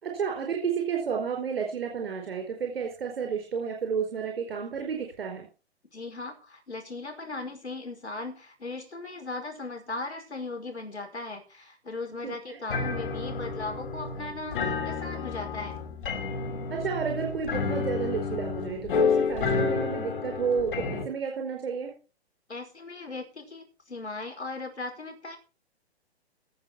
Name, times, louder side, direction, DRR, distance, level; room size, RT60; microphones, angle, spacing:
voice 1, 0.0-5.5 12.2-12.6 16.7-21.9, right 6 dB, 60° right, 2 dB, 5.0 m, -31 dB
voice 2, 5.9-15.8 22.5-25.4, left 3 dB, 80° left, 3 dB, 5.3 m, -38 dB
sound 1, 12.7-21.0, left 5 dB, 55° left, 5.0 m, -30 dB
18.5 x 6.3 x 6.0 m, 0.34 s
figure-of-eight pair, 125°, 33 cm